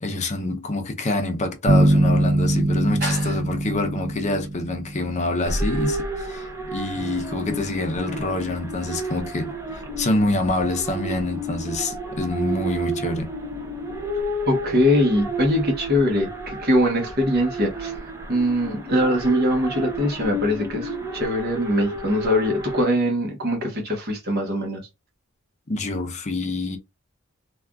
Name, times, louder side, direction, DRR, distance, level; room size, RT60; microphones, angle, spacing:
voice 1, 0.0-13.3 25.7-26.8, left 2 dB, 35° left, 0.6 m, -26 dB
sound 1, 1.7-5.4, right 1 dB, 75° right, 0.5 m, -21 dB
voice 2, 3.0-3.3 14.5-17.9 18.3-24.8, left 1 dB, 50° right, 1.1 m, -22 dB
sound 2, 5.4-22.8, right 1 dB, 15° right, 0.6 m, -31 dB
3.4 x 2.4 x 2.3 m
head